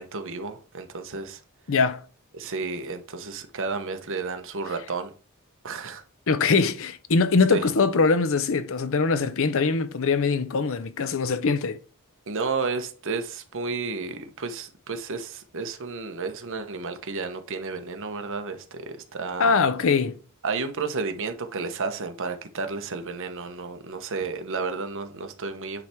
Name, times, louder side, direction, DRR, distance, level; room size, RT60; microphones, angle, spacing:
voice 1, 0.0-1.4 2.3-5.1 5.6-6.0 7.5-7.7 12.3-19.5 20.4-25.8, right 4 dB, 60° right, 1.0 m, -32 dB
voice 2, 1.7-2.0 6.3-11.8 19.4-20.1, left 4 dB, 65° left, 0.6 m, -22 dB
9.5 x 3.4 x 4.4 m
head